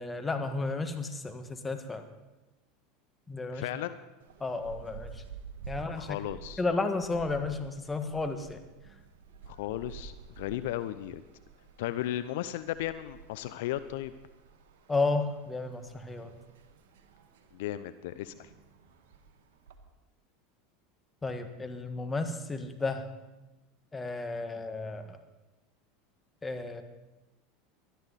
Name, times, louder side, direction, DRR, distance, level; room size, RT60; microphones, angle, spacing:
voice 1, 0.0-2.0 3.3-3.7 4.4-5.2 5.7-6.2 6.6-8.6 14.9-16.3 21.2-23.1 23.9-25.2 26.4-26.8, left 3 dB, 15° left, 6 dB, 1.7 m, -33 dB
voice 2, 3.5-4.0 5.9-6.6 9.5-11.2 11.8-14.1 17.5-18.5, left 13 dB, 70° left, 13 dB, 0.6 m, -35 dB
sound 1, 4.2-19.8, right 6 dB, 75° right, 1.5 m, -50 dB
20.5 x 12.5 x 4.2 m, 1.0 s
hypercardioid pair, 90°, 0 cm